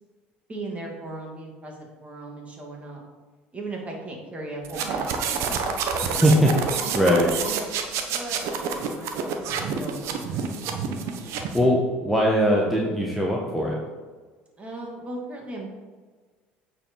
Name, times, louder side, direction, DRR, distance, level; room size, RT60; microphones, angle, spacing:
voice 1, 0.5-3.0 3.5-5.7 6.0-6.3 7.0-7.3 8.1-10.5 14.6-15.8, right 2 dB, 25° right, -1 dB, 2.5 m, -37 dB
sound 1, 4.6-11.7, right 6 dB, 65° right, 1.1 m, -28 dB
voice 2, 6.0-6.6 6.9-7.3 11.5-13.8, equal, ahead, -3 dB, 1.4 m, -21 dB
8.5 x 4.8 x 4.7 m, 1.4 s
supercardioid pair, 85°, 5 cm